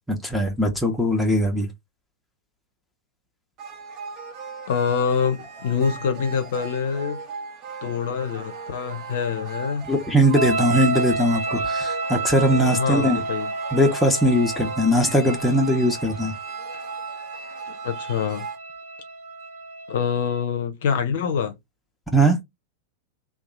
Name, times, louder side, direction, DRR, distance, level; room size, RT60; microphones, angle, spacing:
voice 1, 0.1-1.7 9.8-13.2 13.7-16.3 22.1-22.4, equal, 5° left, 0.9 m, -20 dB
sound 1, 3.6-18.6, right 5 dB, 35° right, 1.1 m, -38 dB
voice 2, 4.7-7.2 7.8-9.8 12.7-13.5 17.8-18.5 19.9-21.6, left 6 dB, 55° left, 0.7 m, -25 dB
sound 2, 10.3-20.4, right 3 dB, 65° right, 0.9 m, -30 dB
2.9 x 2.3 x 3.7 m
figure-of-eight pair, 90°, 0 cm